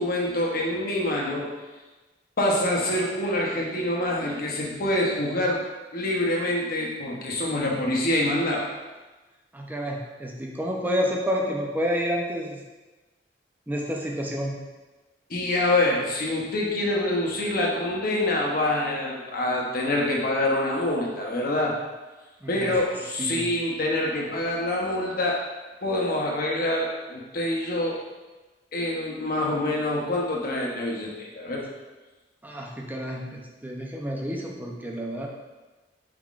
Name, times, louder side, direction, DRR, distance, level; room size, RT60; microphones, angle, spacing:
voice 1, 0.0-1.5 2.4-5.6 5.9-8.7 15.3-21.7 22.5-25.4 25.8-28.0 28.7-31.6, left 1 dB, 55° left, -2 dB, 0.8 m, -26 dB
voice 2, 9.5-12.6 13.7-14.6 22.4-22.7 23.2-23.5 32.4-35.3, equal, 10° right, -1 dB, 0.5 m, -29 dB
4.6 x 3.7 x 2.4 m, 1.2 s
head